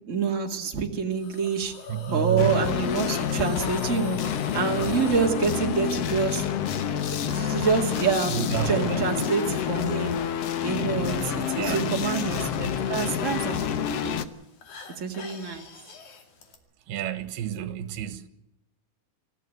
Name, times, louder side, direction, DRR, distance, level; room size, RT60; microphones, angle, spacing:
voice 1, 0.1-1.7 2.1-4.2 4.5-6.5 7.2-10.2 10.6-14.2 15.0-15.7, right 6 dB, 25° right, 1.8 m, -27 dB
Hiss, 1.2-16.6, left 5 dB, 50° left, 3.6 m, -44 dB
voice 2, 1.9-2.6 8.3-9.1 11.6-12.0 16.9-18.3, right 10 dB, 85° right, 3.3 m, -29 dB
sound 1, 2.4-14.2, left 8 dB, 90° left, 1.3 m, -28 dB
26.0 x 15.0 x 7.8 m
omnidirectional pair, 4.5 m